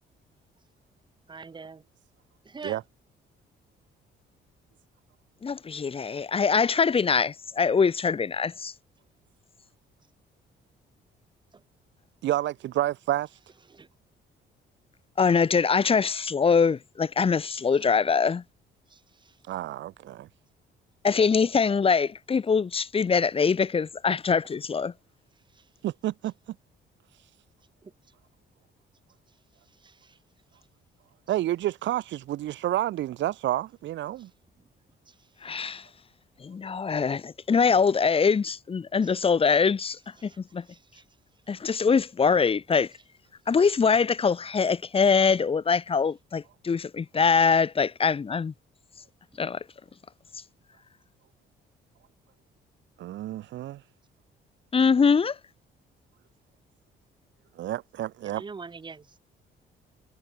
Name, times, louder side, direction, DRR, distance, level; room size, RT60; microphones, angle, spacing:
voice 1, 1.3-1.8 2.5-2.8 58.4-59.2, right 4 dB, 25° right, 0.6 m, -40 dB
voice 2, 5.4-8.7 15.2-18.4 21.0-24.9 35.4-35.9 36.4-40.6 41.5-42.9 43.5-48.5 49.4-49.6 54.7-55.4, left 5 dB, 30° left, 0.7 m, -23 dB
voice 3, 12.2-13.3 19.5-20.3 25.8-26.3 31.3-34.3 53.0-53.8 57.6-58.4, right 14 dB, 65° right, 0.5 m, -29 dB
cardioid pair, 90°, 20 cm